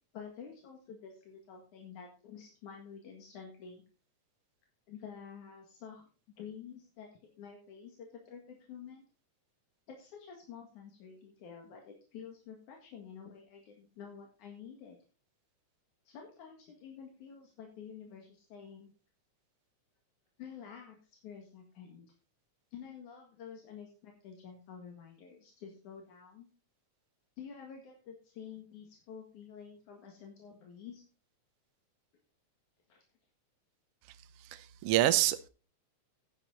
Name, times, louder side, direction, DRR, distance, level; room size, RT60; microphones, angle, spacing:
voice 1, 0.1-3.8 4.9-6.0 6.4-9.0 9.9-15.0 16.1-18.9 20.4-22.1 22.7-26.5 27.4-31.0 32.9-33.0, left 7 dB, 80° left, 3.3 m, -49 dB
voice 2, 34.5-35.5, right 14 dB, 80° right, 1.3 m, -27 dB
10.5 x 10.0 x 3.9 m
omnidirectional pair, 3.4 m